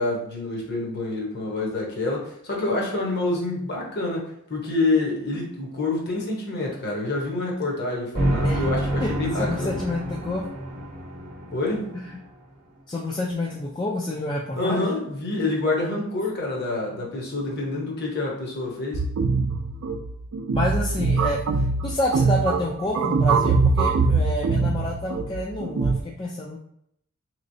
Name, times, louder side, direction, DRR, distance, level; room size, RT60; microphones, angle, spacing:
voice 1, 0.0-9.8 11.5-11.8 14.5-19.0, left 2 dB, 50° left, -1 dB, 0.9 m, -27 dB
sound 1, 8.2-12.2, right 1 dB, 45° right, 0.9 m, -28 dB
voice 2, 9.4-10.4 11.9-12.0 12.9-14.8 20.5-21.4 21.8-26.6, left 1 dB, 20° left, -3 dB, 0.3 m, -28 dB
sound 2, 18.9-26.0, right 4 dB, 65° right, 0.3 m, -23 dB
3.4 x 3.0 x 2.7 m, 0.72 s
head